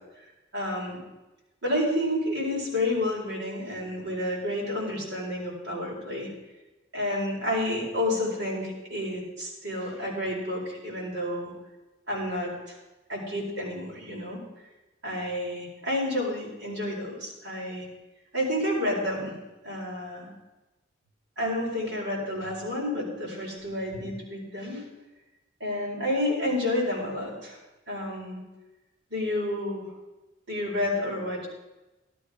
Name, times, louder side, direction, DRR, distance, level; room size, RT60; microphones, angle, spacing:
voice 1, 0.5-1.0 1.6-6.3 6.9-11.5 12.1-12.8 13.1-14.4 15.0-17.9 18.3-19.3 19.6-20.3 21.4-24.8 25.6-27.6 27.9-28.4 29.1-29.9 30.5-31.5, left 1 dB, 65° right, -3 dB, 4.6 m, -30 dB
13.5 x 12.5 x 5.0 m, 1.1 s
head